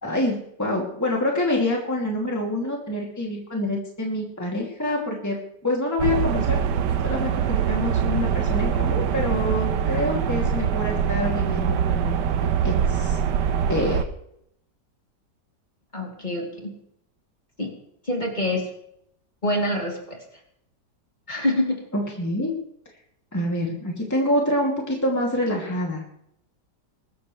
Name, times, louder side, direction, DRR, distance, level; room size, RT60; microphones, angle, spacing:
voice 1, 0.0-6.6 7.0-13.2 13.7-14.0 21.9-22.5 23.3-26.2, left 1 dB, 10° left, -2 dB, 2.6 m, -26 dB
sound 1, 6.0-14.0, right 8 dB, 75° right, 1.5 m, -23 dB
voice 2, 15.9-16.7 17.6-17.7 18.0-18.7 19.4-20.2 21.3-21.8, left 1 dB, 25° left, -1 dB, 3.0 m, -26 dB
22.5 x 13.0 x 3.3 m, 0.74 s
omnidirectional pair, 1.9 m